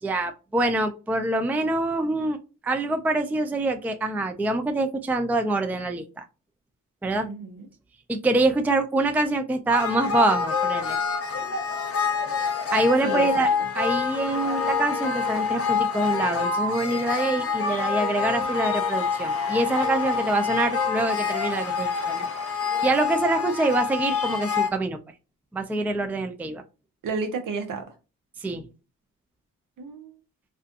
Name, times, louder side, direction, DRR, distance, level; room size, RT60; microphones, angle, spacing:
voice 1, 0.0-2.4 2.6-6.2 7.0-7.3 8.1-11.0 12.7-13.5 13.8-22.3 22.8-25.0 25.5-26.6 28.4-28.7, right 2 dB, 5° right, 6 dB, 0.4 m, -25 dB
voice 2, 7.3-7.7 13.0-13.5 27.0-27.8 29.8-30.1, right 4 dB, 65° right, 5 dB, 0.8 m, -31 dB
sound 1, 9.7-24.7, left 5 dB, 40° left, 0.7 m, -26 dB
2.4 x 2.4 x 2.4 m, 0.31 s
cardioid pair, 65°, 35 cm